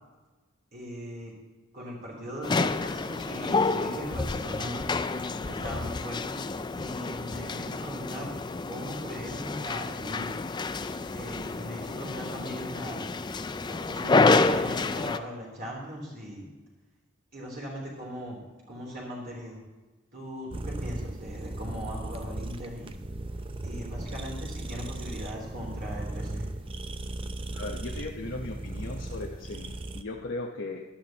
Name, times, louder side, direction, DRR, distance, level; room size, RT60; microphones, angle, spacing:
voice 1, 0.7-1.3 1.7-4.9 5.5-6.4 6.8-8.3 8.7-10.4 11.1-13.1 13.6-16.5 17.3-18.4 18.7-19.6 20.1-22.9 23.6-26.5, equal, 50° right, -4 dB, 3.5 m, -39 dB
sound 1, 2.4-15.2, left 3 dB, 20° left, 0.4 m, -29 dB
sound 2, 20.5-30.0, right 2 dB, 25° right, 0.6 m, -37 dB
voice 2, 27.5-30.8, left 2 dB, 70° left, -2 dB, 1.0 m, -37 dB
17.0 x 11.5 x 2.9 m, 1.2 s
head